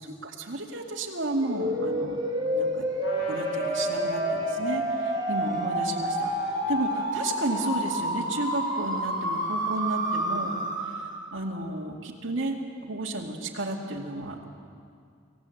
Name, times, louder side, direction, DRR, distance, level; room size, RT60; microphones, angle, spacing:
voice 1, 0.2-2.2 2.5-2.9 3.3-10.6 11.3-12.6 12.8-14.4, right 2 dB, 75° right, -2 dB, 2.3 m, -32 dB
sound 1, 1.4-11.3, equal, 20° right, 3.9 m, -29 dB
Trumpet, 3.0-8.9, equal, 70° left, 4.9 m, -43 dB
26.0 x 16.5 x 8.0 m, 2.3 s
head